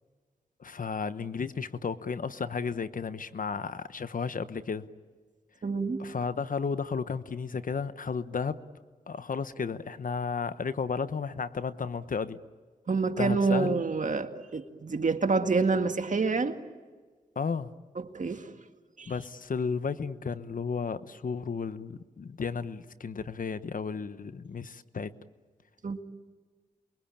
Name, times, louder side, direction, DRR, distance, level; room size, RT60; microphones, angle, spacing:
voice 1, 0.6-4.9 6.0-8.6 9.1-12.4 13.2-13.8 17.3-17.7 19.1-25.1, left 5 dB, 65° left, 13 dB, 1.1 m, -33 dB
voice 2, 5.6-6.0 12.9-16.6 18.1-18.4 19.0-19.1 25.8-26.0, right 4 dB, 55° right, 6 dB, 2.0 m, -27 dB
28.5 x 23.0 x 8.8 m, 1.4 s
cardioid pair, 40°, 15 cm